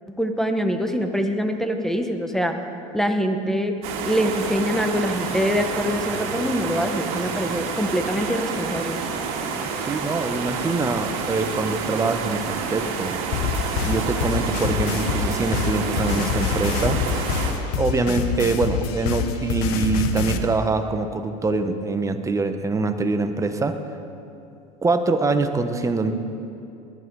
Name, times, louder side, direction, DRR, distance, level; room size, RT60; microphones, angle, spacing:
voice 1, 0.1-2.6 2.9-3.8 4.0-9.0, equal, ahead, 5 dB, 1.2 m, -24 dB
sound 1, 3.8-17.5, right 5 dB, 65° right, 2.5 m, -29 dB
voice 2, 9.5-13.2 13.8-17.0 17.8-23.8 24.8-26.1, right 3 dB, 15° right, 7 dB, 1.1 m, -24 dB
sound 2, 13.3-20.4, left 7 dB, 70° left, 1.2 m, -26 dB
19.5 x 11.5 x 4.8 m, 2.6 s
supercardioid pair, 105°, 18 cm